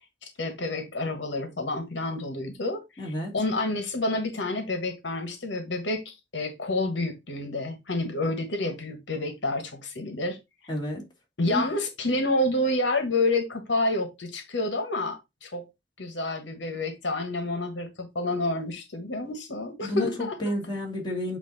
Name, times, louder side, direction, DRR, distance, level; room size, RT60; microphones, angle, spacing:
voice 1, 0.2-10.4 11.4-15.6 16.0-20.4, left 2 dB, 80° left, 1.4 m, -29 dB
voice 2, 3.0-3.4 10.7-11.0 11.5-11.6 19.8-21.4, left 1 dB, 25° left, 2.4 m, -30 dB
8.4 x 2.9 x 4.0 m
head